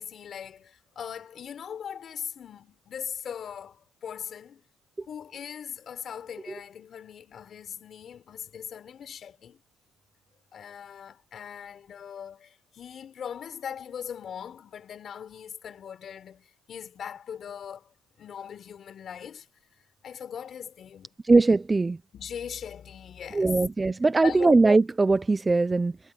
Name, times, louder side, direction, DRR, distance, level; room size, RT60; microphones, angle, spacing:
voice 1, 0.0-4.6 5.1-9.6 10.5-19.5 20.0-21.1 22.1-23.7 24.2-24.6, left 8 dB, 35° left, 4.8 m, -40 dB
voice 2, 21.3-22.0 23.3-25.9, right 3 dB, 15° right, 0.6 m, -21 dB
cardioid pair, 145°, 0 cm